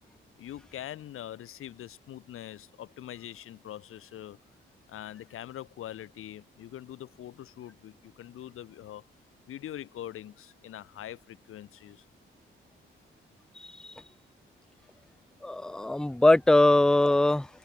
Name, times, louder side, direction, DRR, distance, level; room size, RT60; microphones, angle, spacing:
voice 1, 0.4-4.4 4.9-9.1 9.5-12.0, left 12 dB, 85° left, 4.3 m, -43 dB
voice 2, 15.4-17.5, left 2 dB, 5° left, 0.6 m, -21 dB
cardioid pair, 105°, 21 cm